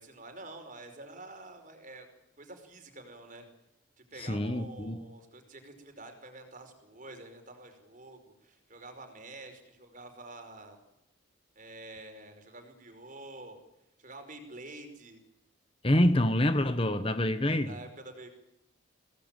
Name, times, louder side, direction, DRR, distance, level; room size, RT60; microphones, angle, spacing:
voice 1, 0.0-2.1 2.4-3.5 4.1-10.8 11.6-13.6 14.0-15.2 17.6-18.3, right 2 dB, 40° right, 5.2 m, -48 dB
voice 2, 4.2-5.0 15.8-17.7, left 1 dB, 25° left, 1.2 m, -26 dB
25.5 x 19.0 x 9.2 m
head